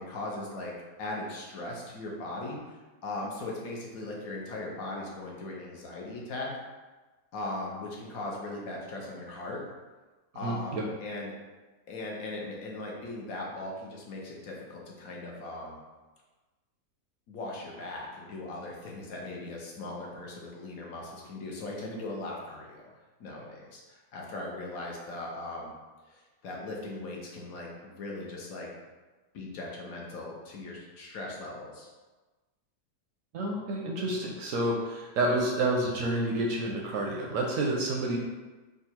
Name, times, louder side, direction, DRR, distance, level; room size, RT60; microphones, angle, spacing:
voice 1, 0.0-6.5 7.3-9.6 10.3-11.3 11.9-15.8 17.3-22.9 23.2-25.7 26.1-28.7 29.3-31.9, left 2 dB, 70° left, -2 dB, 1.1 m, -39 dB
voice 2, 10.4-10.8 33.3-38.2, right 2 dB, 70° right, -1 dB, 0.9 m, -29 dB
3.7 x 2.3 x 4.3 m, 1.2 s
omnidirectional pair, 1.7 m